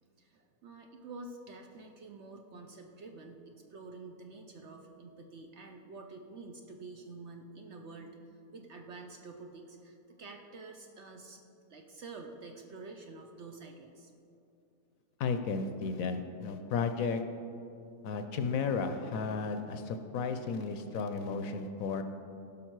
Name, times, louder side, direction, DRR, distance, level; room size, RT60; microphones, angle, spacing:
voice 1, 0.2-8.1 8.5-11.4 11.7-14.1, right 3 dB, 60° right, 3 dB, 0.8 m, -48 dB
voice 2, 15.2-17.2 18.0-22.0, left 5 dB, 70° left, 8 dB, 1.0 m, -33 dB
16.0 x 5.6 x 4.6 m, 2.7 s
omnidirectional pair, 1.7 m